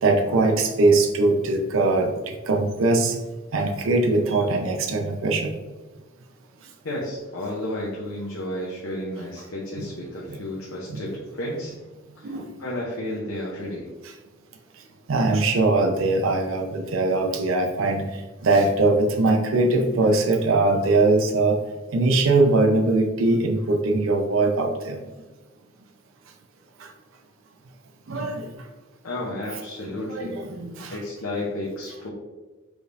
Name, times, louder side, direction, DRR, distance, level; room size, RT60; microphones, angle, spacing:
voice 1, 0.0-2.1 2.5-3.1 3.5-5.5 9.8-9.9 10.3-10.4 12.2-12.4 15.1-18.0 18.4-21.6 21.9-25.0 28.1-28.4 30.1-30.9, right 2 dB, 85° right, 3 dB, 0.5 m, -21 dB
voice 2, 6.8-11.7 12.2-13.9 29.0-30.4 30.9-32.1, left 1 dB, 90° left, -4 dB, 0.8 m, -32 dB
4.9 x 3.2 x 2.6 m, 1.2 s
head